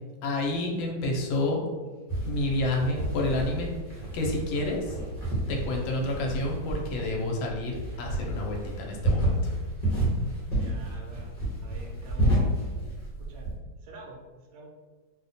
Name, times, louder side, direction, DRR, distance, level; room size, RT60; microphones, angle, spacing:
voice 1, 0.2-1.6 2.2-3.7 4.1-5.0 5.5-9.3, left 2 dB, 85° left, 0 dB, 1.4 m, -29 dB
sound 1, 2.1-13.5, right 1 dB, 25° left, 0.9 m, -30 dB
voice 2, 10.6-11.3 11.6-12.4 13.2-13.5 13.8-14.6, right 1 dB, 80° right, -1 dB, 0.6 m, -47 dB
3.1 x 2.1 x 4.0 m, 1.3 s
omnidirectional pair, 2.1 m